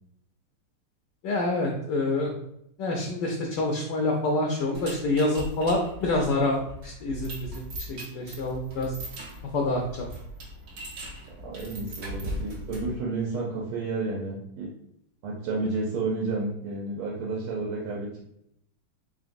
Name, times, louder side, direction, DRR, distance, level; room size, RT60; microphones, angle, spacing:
voice 1, 1.2-2.3 2.8-8.9 9.5-9.8, left 2 dB, 70° left, 0 dB, 1.1 m, -27 dB
sound 1, 4.7-13.0, equal, 55° right, 1.2 m, -39 dB
voice 2, 11.3-14.7 15.2-18.2, right 3 dB, 85° right, -3 dB, 1.7 m, -31 dB
3.8 x 3.8 x 2.5 m, 0.75 s
omnidirectional pair, 2.3 m